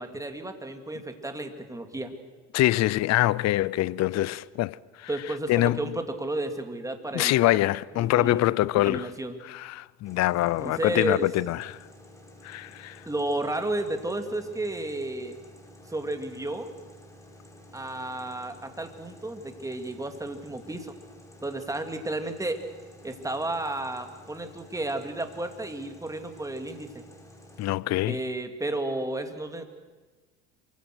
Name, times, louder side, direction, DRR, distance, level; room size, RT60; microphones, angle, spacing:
voice 1, 0.0-2.1 5.1-7.6 7.9-8.4 8.7-9.4 10.6-11.3 13.1-15.4 15.9-16.7 17.7-20.9 21.4-22.7 23.0-27.1 28.0-29.6, right 2 dB, 10° right, 2.7 m, -32 dB
voice 2, 2.5-5.1 5.5-5.8 7.1-9.1 9.5-11.8 12.4-13.0 27.6-28.2, left 16 dB, 50° left, 0.7 m, -24 dB
sound 1, 10.0-27.7, left 1 dB, 10° left, 5.0 m, -51 dB
26.5 x 24.5 x 6.4 m
supercardioid pair, 105°, 34 cm